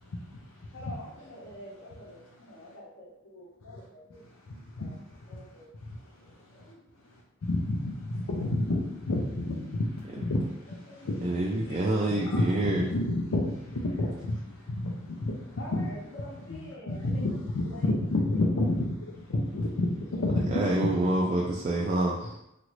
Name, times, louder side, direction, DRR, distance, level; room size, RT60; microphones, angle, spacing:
voice 1, 0.0-0.7 4.5-5.4 5.8-6.7 7.1-11.4 11.7-11.9 12.2-15.8 16.5-16.6 16.9-20.9, left 2 dB, 80° left, 0.5 m, -30 dB
voice 2, 0.7-4.9 5.3-7.3 10.7-12.4 15.6-18.1 20.4-20.8, left 1 dB, 60° left, 0.9 m, -48 dB
voice 3, 11.2-12.9 20.5-22.2, right 2 dB, 35° right, 0.3 m, -27 dB
3.0 x 2.5 x 3.0 m
head